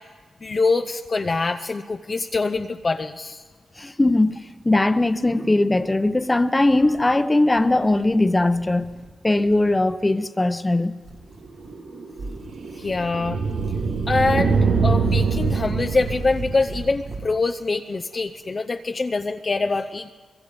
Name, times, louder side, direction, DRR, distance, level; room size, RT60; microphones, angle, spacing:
voice 1, 0.4-3.4 12.7-13.4 14.1-20.1, left 3 dB, 40° left, 0.7 m, -24 dB
sound 1, 3.7-3.8 4.2-5.3 5.7-6.1 6.6-7.2 7.5-9.1 9.4-9.9 11.0-11.8 12.1-13.1 13.4-14.6 15.0-17.4, right 3 dB, 65° right, 2.3 m, -40 dB
voice 2, 3.8-8.9 9.2-11.0, left 2 dB, 20° left, 1.0 m, -20 dB
sound 2, 11.4-17.0, right 5 dB, 90° right, 1.9 m, -24 dB
23.0 x 22.0 x 5.3 m
cardioid pair, 70°, 0 cm